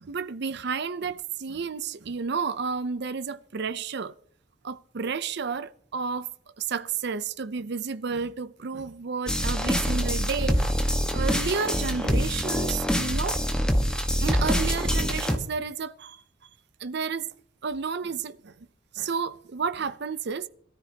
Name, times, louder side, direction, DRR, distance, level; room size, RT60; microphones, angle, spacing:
voice 1, 0.0-4.1 4.6-6.3 6.6-10.7 11.1-13.6 14.2-16.2 16.8-17.3 17.6-18.5 19.0-20.5, right 5 dB, 65° right, 0.6 m, -31 dB
sound 1, 9.3-15.4, equal, 5° left, 1.3 m, -25 dB
22.0 x 13.5 x 2.9 m
head